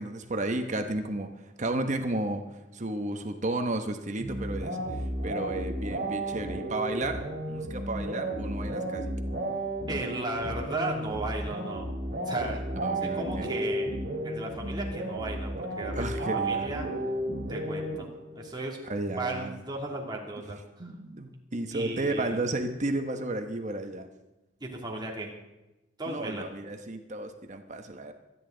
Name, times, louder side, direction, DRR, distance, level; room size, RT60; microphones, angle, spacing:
voice 1, 0.0-2.4 2.7-9.1 12.7-13.5 15.9-16.7 18.8-19.5 20.8-24.1 26.1-28.1, right 2 dB, 40° right, 6 dB, 1.1 m, -33 dB
sound 1, 4.2-18.5, right 1 dB, 60° right, 4.0 m, -33 dB
voice 2, 9.9-11.9 12.3-12.6 13.0-13.9 14.2-16.9 17.5-18.1 18.4-18.8 19.2-20.9 21.7-22.4 24.6-25.3 26.0-26.5, right 2 dB, 25° right, -1 dB, 2.8 m, -35 dB
25.0 x 10.5 x 3.9 m, 0.99 s
head